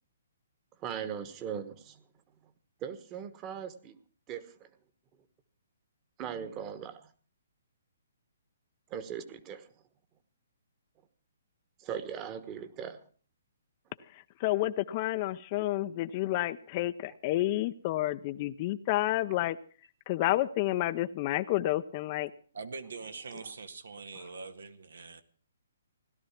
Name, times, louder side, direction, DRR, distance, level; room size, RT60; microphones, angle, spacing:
voice 1, 0.8-2.0 2.8-3.9 4.3-4.7 6.2-7.1 8.9-9.7 11.8-13.0, right 8 dB, 25° right, 12 dB, 1.4 m, -39 dB
voice 2, 14.1-19.6 20.1-22.3, left 15 dB, 35° left, 11 dB, 0.6 m, -30 dB
voice 3, 22.5-25.2, right 4 dB, 85° right, 9 dB, 1.8 m, -43 dB
17.0 x 12.0 x 5.9 m, 0.42 s
hypercardioid pair, 150°, 0 cm